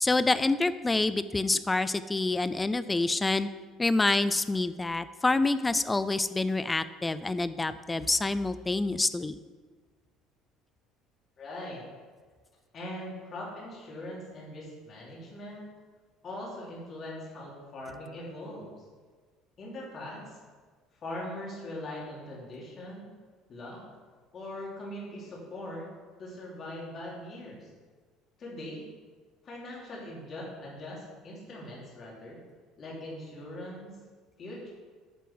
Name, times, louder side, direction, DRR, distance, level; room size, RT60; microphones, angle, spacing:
voice 1, 0.0-3.5 3.8-9.4, left 2 dB, 10° left, 14 dB, 0.3 m, -27 dB
voice 2, 11.4-11.8 12.7-15.7 16.2-18.8 19.6-20.4 21.0-23.1 23.5-23.8 24.3-25.9 26.2-27.7 28.4-28.9 29.4-32.4 32.8-34.0 34.4-34.7, left 1 dB, 30° left, -4 dB, 2.9 m, -41 dB
9.4 x 6.8 x 6.2 m, 1.4 s
cardioid pair, 175°, 0 cm